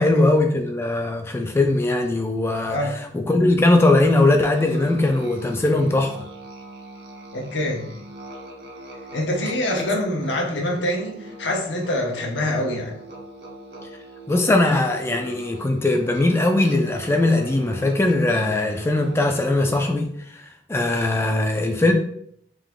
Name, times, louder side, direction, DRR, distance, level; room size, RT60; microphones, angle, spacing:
voice 1, 0.0-2.8 3.1-6.1 9.8-9.9 14.3-20.4 20.7-21.9, left 2 dB, 15° left, 4 dB, 0.3 m, -20 dB
Musical instrument, 4.5-20.1, right 1 dB, 65° right, 0.8 m, -41 dB
voice 2, 7.3-7.9 9.1-12.9, left 1 dB, 80° left, 0 dB, 0.9 m, -25 dB
3.7 x 2.9 x 3.5 m, 0.68 s
head